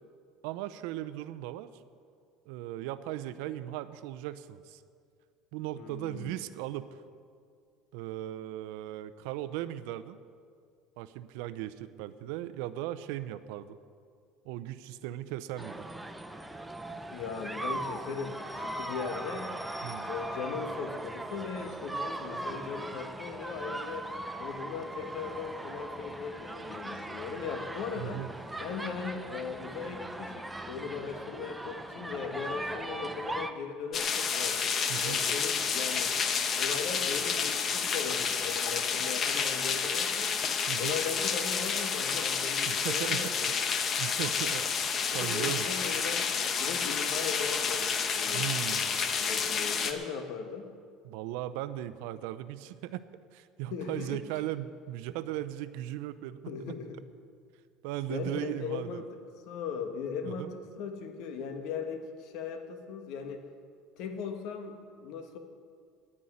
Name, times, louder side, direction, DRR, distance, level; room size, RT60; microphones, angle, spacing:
voice 1, 0.4-1.7 2.5-4.8 5.5-7.0 7.9-10.2 11.0-13.8 14.4-15.9 19.8-20.1 27.9-28.3 34.9-35.2 40.7-41.0 42.6-43.5 44.0-44.7 45.1-45.7 48.3-49.0 51.0-53.0 53.3-56.5 57.8-59.0 60.2-60.5, right 13 dB, 80° right, 14 dB, 0.6 m, -37 dB
voice 2, 5.7-6.3 17.1-19.6 20.0-24.1 24.4-28.2 28.6-34.6 35.0-36.2 36.6-40.3 40.8-43.6 44.3-44.5 45.1-46.3 46.6-48.5 49.1-50.7 53.7-54.2 56.5-57.0 58.1-59.2 59.5-63.4 64.0-65.4, left 6 dB, 65° left, 6 dB, 1.5 m, -38 dB
sound 1, 15.6-33.5, right 1 dB, 5° right, 0.7 m, -39 dB
sound 2, 33.9-49.9, left 6 dB, 35° left, 1.0 m, -30 dB
10.0 x 9.8 x 9.4 m, 2.2 s
cardioid pair, 140°, 0 cm